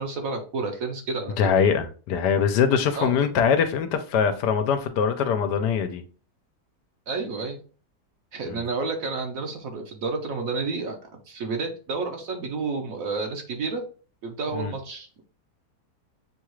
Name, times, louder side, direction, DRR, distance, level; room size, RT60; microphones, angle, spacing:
voice 1, 0.0-1.4 2.9-3.1 7.1-7.6 8.3-11.0 11.3-13.8 14.2-15.2, right 4 dB, 60° right, 1.1 m, -30 dB
voice 2, 1.4-6.0 8.5-8.6 14.5-14.7, left 7 dB, 80° left, 1.2 m, -23 dB
7.0 x 2.4 x 3.0 m
omnidirectional pair, 1.8 m